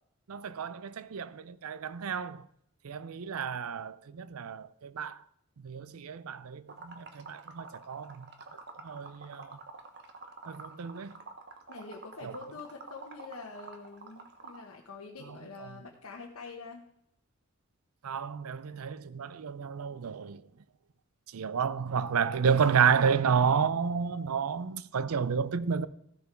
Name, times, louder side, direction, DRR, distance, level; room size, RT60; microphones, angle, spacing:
voice 1, 0.3-2.4 2.8-5.2 5.6-8.3 8.8-9.6 10.5-11.1 12.2-12.3 15.6-15.7 18.0-20.4 21.3-25.9, right 6 dB, 85° right, 0.5 m, -30 dB
Liquid, 6.7-14.7, right 3 dB, 50° right, 1.2 m, -48 dB
voice 2, 11.7-16.8, left 3 dB, 85° left, 1.1 m, -45 dB
15.0 x 6.7 x 4.6 m
head